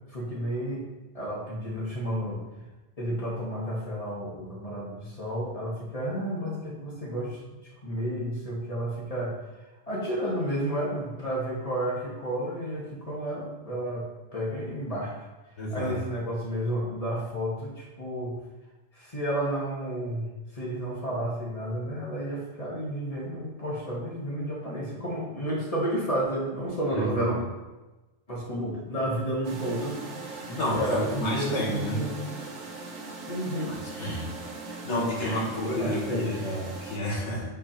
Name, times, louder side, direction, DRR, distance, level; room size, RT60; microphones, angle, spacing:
voice 1, 0.1-0.9 1.1-2.4 3.0-9.4 9.9-15.3 15.7-18.3 18.9-27.4 28.3-30.0 30.5-32.5 33.2-34.3 35.2-36.5, right 1 dB, 30° left, -5 dB, 1.5 m, -31 dB
voice 2, 15.6-15.9 26.9-27.4 30.6-32.0 34.0-34.2 34.8-37.4, left 1 dB, 70° left, -3 dB, 1.8 m, -30 dB
sound 1, 29.4-37.0, right 3 dB, 85° right, 1.2 m, -40 dB
8.4 x 2.9 x 5.1 m, 1.1 s
omnidirectional pair, 1.2 m